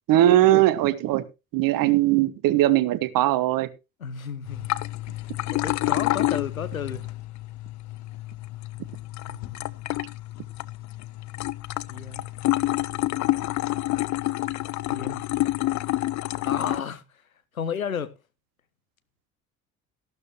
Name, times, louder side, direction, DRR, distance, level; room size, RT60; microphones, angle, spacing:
voice 1, 0.1-1.2 1.5-3.7, right 14 dB, 55° right, 1.2 m, -20 dB
voice 2, 4.0-4.9 5.1-5.2 5.5-7.1 9.3-9.8 11.9-12.3 14.9-15.2 16.4-17.2 17.5-18.1, left 7 dB, 85° left, 0.8 m, -33 dB
sound 1, 4.5-16.8, left 17 dB, 45° left, 0.7 m, -28 dB
14.5 x 12.0 x 3.0 m
figure-of-eight pair, 50°, 40 cm